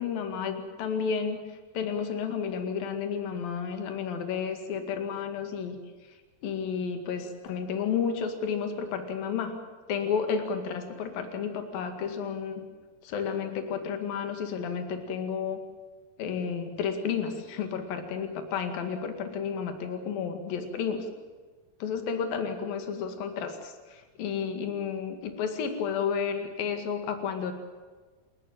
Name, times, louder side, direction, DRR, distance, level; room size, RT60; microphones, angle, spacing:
voice 1, 0.0-5.8 6.4-9.6 9.9-12.6 13.0-15.6 16.2-21.1 21.8-27.5, left 6 dB, 70° left, 6 dB, 3.9 m, -31 dB
28.0 x 15.0 x 8.8 m, 1.4 s
omnidirectional pair, 4.3 m